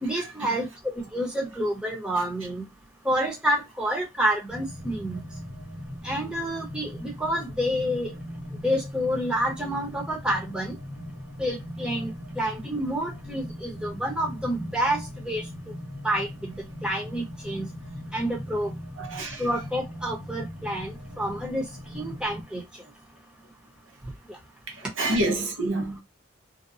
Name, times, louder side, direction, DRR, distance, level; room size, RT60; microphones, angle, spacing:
voice 1, 0.0-0.7 0.9-2.6 3.0-5.2 6.0-8.1 8.6-10.7 11.4-12.1 12.4-15.4 16.0-17.7 18.1-18.7 19.4-21.7 21.9-22.6, equal, 5° right, 0.8 m, -28 dB
sound 1, 4.5-22.4, equal, 65° right, 1.3 m, -39 dB
voice 2, 19.0-19.4 24.7-26.0, right 1 dB, 80° right, 0.8 m, -27 dB
2.6 x 2.2 x 2.6 m
head